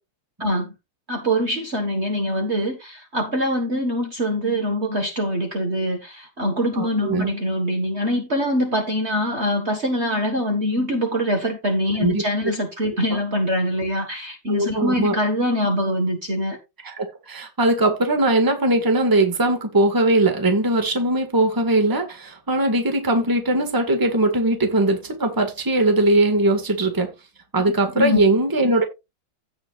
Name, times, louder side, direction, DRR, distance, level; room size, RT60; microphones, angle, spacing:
voice 1, 0.4-0.7 1.1-16.6 28.0-28.2, equal, 35° right, 1.7 m, -24 dB
voice 2, 6.7-7.3 12.0-12.2 13.1-13.2 14.5-15.2 16.8-27.1 27.5-28.8, right 2 dB, 10° right, 1.7 m, -20 dB
16.5 x 5.8 x 2.5 m
omnidirectional pair, 2.2 m